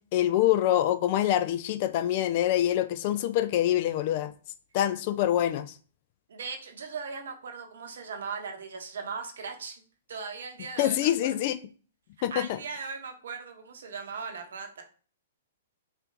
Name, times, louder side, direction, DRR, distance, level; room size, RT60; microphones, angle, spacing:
voice 1, 0.1-4.3 4.7-5.8 10.8-11.6 12.2-12.6, left 12 dB, 45° left, 0.3 m, -25 dB
voice 2, 6.3-9.8 10.1-11.1 12.3-14.8, right 5 dB, 65° right, 0.8 m, -38 dB
4.1 x 2.5 x 2.6 m
figure-of-eight pair, 115°, 0 cm